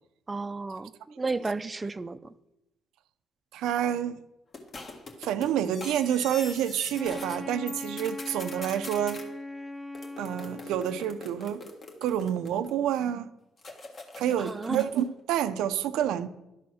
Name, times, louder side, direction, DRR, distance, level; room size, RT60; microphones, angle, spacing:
voice 1, 0.3-0.9 1.2-2.2 14.4-14.8, right 3 dB, 25° right, 0.4 m, -32 dB
voice 2, 3.5-4.2 5.2-9.2 10.2-11.6 12.0-13.3 14.2-16.3, right 10 dB, 80° right, 0.4 m, -28 dB
sound 1, 4.5-7.4 7.7-9.3 9.9-12.9 13.6-15.1, left 3 dB, 45° left, 1.5 m, -44 dB
Wind instrument woodwind instrument, 7.0-11.3, left 1 dB, ahead, 0.8 m, -40 dB
11.5 x 4.2 x 6.2 m
supercardioid pair, 65°, 0 cm